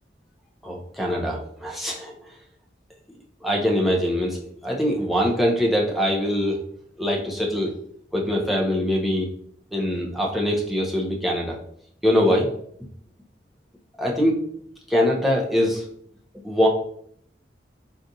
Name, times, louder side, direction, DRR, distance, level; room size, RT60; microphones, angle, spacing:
voice 1, 0.6-2.1 3.4-4.4 4.6-6.6 7.0-7.7 8.1-9.3 9.7-11.6 12.0-12.5 14.0-14.4 14.9-15.8 16.4-16.7, equal, ahead, -3 dB, 0.5 m, -23 dB
4.0 x 2.4 x 2.5 m, 0.65 s
head